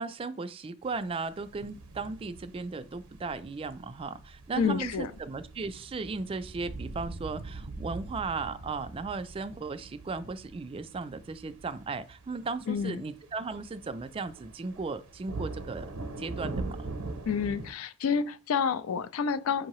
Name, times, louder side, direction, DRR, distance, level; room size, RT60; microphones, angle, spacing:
voice 1, 0.0-15.9 16.2-16.9, right 4 dB, 25° right, 0.3 m, -36 dB
sound 1, 0.8-17.7, right 3 dB, 80° right, 0.6 m, -43 dB
voice 2, 4.6-5.1 12.7-13.0 17.3-19.7, left 6 dB, 70° left, 0.3 m, -29 dB
5.2 x 2.7 x 3.0 m
head